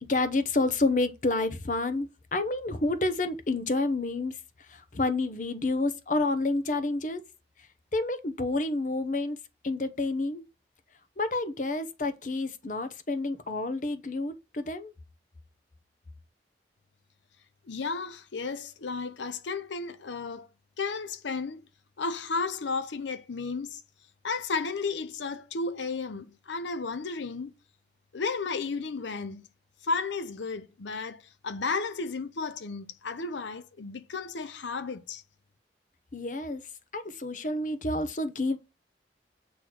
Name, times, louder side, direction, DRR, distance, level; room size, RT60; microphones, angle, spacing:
voice 1, 0.1-4.4 4.7-7.2 7.9-9.4 9.6-10.4 11.2-14.9 36.1-36.7 36.9-38.6, left 2 dB, 45° left, 0.8 m, -29 dB
voice 2, 17.7-20.5 20.8-21.7 22.0-23.8 24.2-27.5 28.1-29.4 29.8-35.2, left 4 dB, 85° left, 0.6 m, -33 dB
8.2 x 3.1 x 6.1 m
head